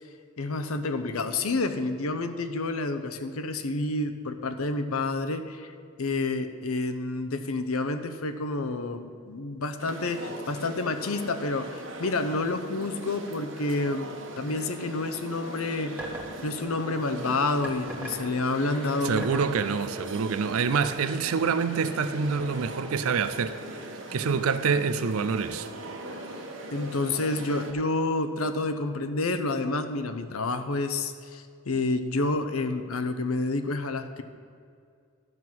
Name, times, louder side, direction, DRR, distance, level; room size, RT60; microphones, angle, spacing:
voice 1, 0.4-5.7 6.0-14.1 14.4-15.9 16.4-19.2 26.7-34.2, left 2 dB, 85° left, 0.8 m, -29 dB
sound 1, 9.8-27.7, right 1 dB, 60° right, 1.3 m, -40 dB
sound 2, 16.0-16.3 17.6-18.3 19.2-19.5 20.8-20.9, right 1 dB, 10° right, 1.2 m, -37 dB
voice 2, 19.0-23.6 24.1-25.7, right 5 dB, 85° right, 0.5 m, -26 dB
12.0 x 6.0 x 7.4 m
head